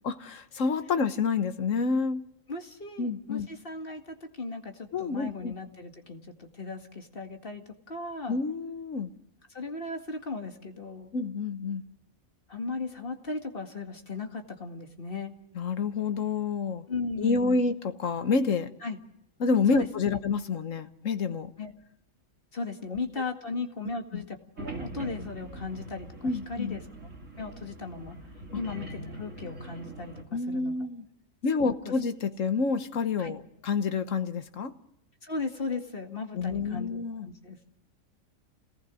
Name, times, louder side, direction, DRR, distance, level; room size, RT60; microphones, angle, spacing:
voice 1, 0.0-2.2 3.0-3.5 4.9-5.5 8.3-9.1 11.1-11.8 15.5-16.9 17.2-18.7 19.4-21.5 24.1-24.2 26.2-26.8 30.3-31.1 31.4-34.7 36.3-37.3, left 4 dB, 70° left, 9 dB, 1.6 m, -28 dB
voice 2, 2.5-8.4 9.5-11.1 12.5-15.3 16.9-17.7 18.8-19.0 19.7-20.2 21.6-21.7 22.5-24.2 24.6-26.8 27.4-28.2 28.6-30.7 31.6-31.9 33.2-33.3 35.2-37.6, left 3 dB, 40° left, 4 dB, 2.2 m, -37 dB
sound 1, 24.6-30.2, right 2 dB, 65° right, 3.1 m, -42 dB
27.5 x 19.0 x 6.3 m, 0.80 s
omnidirectional pair, 1.4 m